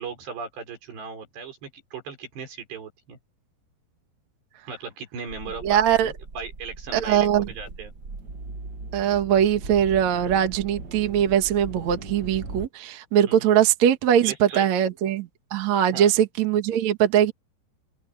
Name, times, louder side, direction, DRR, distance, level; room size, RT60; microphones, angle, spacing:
voice 1, 0.0-3.2 4.7-7.9 13.3-13.5 14.2-14.7 15.9-16.1, right 5 dB, 75° right, 8.1 m, -37 dB
sound 1, 5.3-12.7, right 3 dB, 35° right, 1.8 m, -39 dB
voice 2, 5.6-6.1 6.9-7.5 8.9-17.3, right 10 dB, 50° right, 2.5 m, -21 dB
omnidirectional pair, 4.9 m